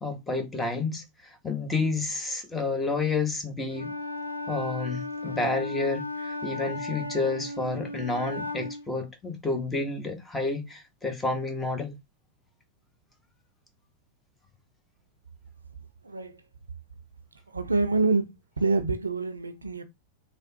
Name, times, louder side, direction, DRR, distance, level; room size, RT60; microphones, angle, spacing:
voice 1, 0.0-3.9 4.5-11.9, left 3 dB, 10° left, 0.9 m, -30 dB
Wind instrument woodwind instrument, 3.7-8.9, left 2 dB, 85° left, 0.4 m, -35 dB
voice 2, 16.0-16.4 17.5-19.8, right 3 dB, 80° right, 0.4 m, -26 dB
3.3 x 2.0 x 2.7 m
figure-of-eight pair, 90°, 0 cm